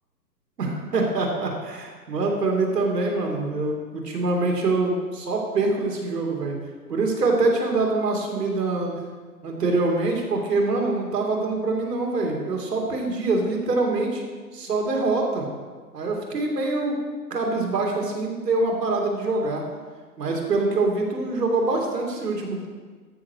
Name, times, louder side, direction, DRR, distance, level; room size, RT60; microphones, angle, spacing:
voice 1, 0.6-6.6 6.9-8.9 9.4-14.2 14.5-15.5 15.9-17.0 17.3-19.6 20.2-22.7, right 3 dB, 75° right, 1 dB, 2.7 m, -24 dB
13.5 x 6.2 x 4.8 m, 1.4 s
hypercardioid pair, 180°, 49 cm